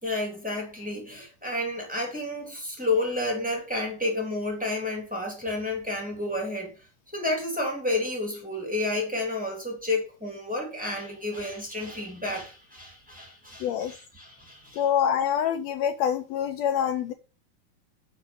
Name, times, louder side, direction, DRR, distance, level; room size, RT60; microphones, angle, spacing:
voice 1, 0.0-6.7 7.1-14.8, left 2 dB, 5° right, 2.5 m, -31 dB
voice 2, 13.6-13.9 14.8-17.1, left 9 dB, 85° left, 1.5 m, -26 dB
6.9 x 6.6 x 5.4 m
omnidirectional pair, 3.7 m